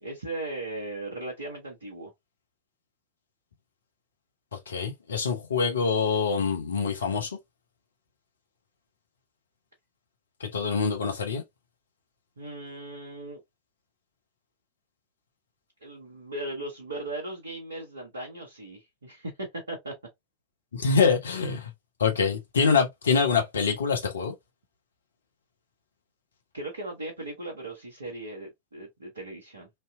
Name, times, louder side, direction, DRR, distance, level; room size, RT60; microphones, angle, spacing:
voice 1, 0.0-2.1 12.4-13.4 15.8-19.9 26.5-29.7, right 2 dB, 75° right, 0.8 m, -37 dB
voice 2, 4.7-7.3 10.4-11.4 20.7-21.7 22.0-24.3, left 5 dB, 70° left, 0.8 m, -25 dB
3.2 x 2.7 x 2.2 m
figure-of-eight pair, 90°, 0 cm